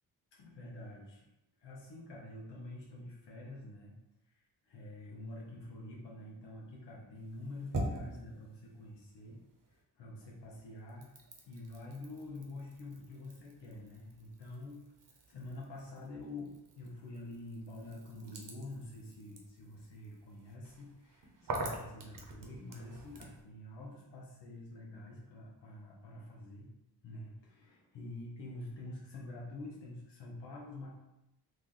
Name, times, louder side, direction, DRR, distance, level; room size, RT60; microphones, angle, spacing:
voice 1, 0.3-1.3 1.6-3.9 4.3-9.4 9.7-11.1 11.5-14.8 15.3-26.7 27.0-30.9, left 2 dB, 90° left, -3 dB, 0.8 m, -47 dB
sound 1, 7.1-9.8 10.1-23.4, right 2 dB, 50° right, 0.8 m, -46 dB
3.1 x 2.6 x 3.8 m, 0.88 s
cardioid pair, 100°, 41 cm